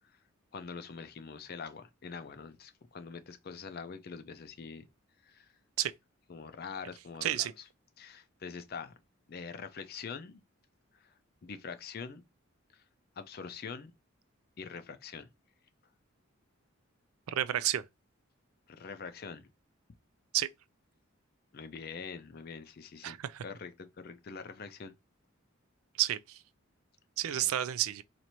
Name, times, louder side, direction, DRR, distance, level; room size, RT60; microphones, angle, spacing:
voice 1, 0.5-4.9 5.3-5.5 6.3-7.6 8.0-8.9 9.3-10.4 11.4-12.2 12.7-12.8 13.2-13.9 14.6-15.3 18.7-19.5 21.5-23.2 23.4-24.9 27.3-27.5, left 5 dB, 45° left, 0.4 m, -44 dB
voice 2, 7.2-7.5 17.3-17.8 20.3-20.5 23.0-23.4 26.0-26.4 27.2-28.0, right 12 dB, 90° right, 0.4 m, -30 dB
4.2 x 2.5 x 2.9 m
head